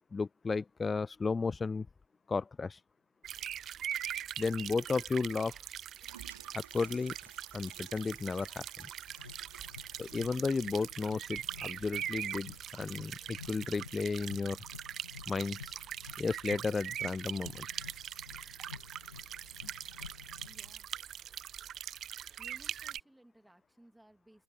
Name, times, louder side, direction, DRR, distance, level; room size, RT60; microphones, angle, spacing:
voice 1, 0.1-1.9 2.3-2.8 4.4-5.6 6.5-7.2 7.5-8.9 10.0-14.6 15.3-15.8 16.2-18.0, left 4 dB, 15° left, 0.4 m, -34 dB
sound 1, 3.2-23.0, right 10 dB, 30° right, 0.6 m, -42 dB
Toilet flush, 5.6-12.6, right 10 dB, 65° right, 3.0 m, -59 dB
sound 2, 9.1-20.7, left 7 dB, 70° left, 2.2 m, -53 dB
voice 2, 20.4-20.9 22.4-24.4, right 1 dB, 5° right, 2.4 m, -60 dB
open air
figure-of-eight pair, 90°, 0 cm